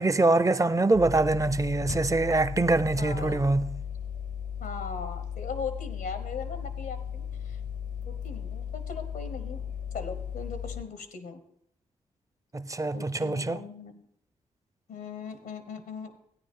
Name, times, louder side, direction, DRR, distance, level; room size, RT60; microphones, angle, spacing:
voice 1, 0.0-3.8 12.5-13.6, right 2 dB, 20° right, 0.5 m, -24 dB
sound 1, 0.9-10.8, left 8 dB, 55° left, 0.7 m, -36 dB
voice 2, 3.0-3.5 4.6-7.6 8.1-9.6 9.9-11.4 12.9-14.0 14.9-16.2, left 5 dB, 80° left, 1.1 m, -39 dB
14.0 x 9.3 x 3.7 m
supercardioid pair, 45°, 15 cm